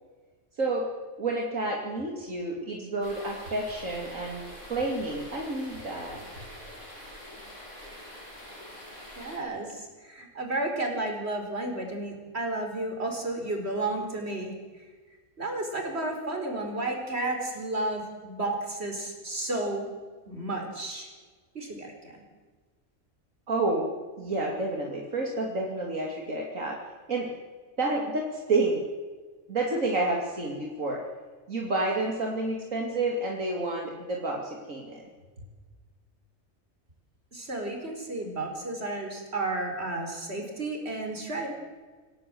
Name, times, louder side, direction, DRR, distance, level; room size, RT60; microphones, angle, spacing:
voice 1, 0.6-0.9 1.2-4.4 4.7-6.2 23.5-23.9 24.2-26.8 27.1-27.3 27.8-28.8 29.5-31.0 31.5-35.0, right 2 dB, 70° right, -1 dB, 3.1 m, -29 dB
sound 1, 3.0-9.4, equal, 65° left, 8.4 m, -45 dB
voice 2, 9.2-14.8 15.4-19.9 20.3-21.1 21.5-22.2 37.3-41.5, right 2 dB, 50° right, 3 dB, 5.0 m, -32 dB
28.0 x 17.0 x 7.8 m, 1.4 s
omnidirectional pair, 1.4 m